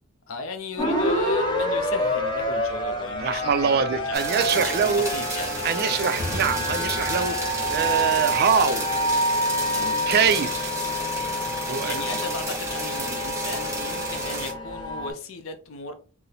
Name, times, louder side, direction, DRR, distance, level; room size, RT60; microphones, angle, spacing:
voice 1, 0.3-4.2 4.6-6.3 9.7-10.5 11.2-15.9, left 3 dB, 70° left, 0.5 m, -36 dB
sound 1, 0.8-15.1, equal, 20° left, 0.6 m, -28 dB
voice 2, 3.2-5.1 5.6-8.9 10.1-10.7 11.7-12.0, right 6 dB, 50° right, 0.3 m, -24 dB
sound 2, 4.1-14.5, right 2 dB, 15° right, 0.6 m, -32 dB
sound 3, 6.2-9.8, left 1 dB, 45° left, 0.9 m, -38 dB
4.0 x 2.0 x 2.7 m
head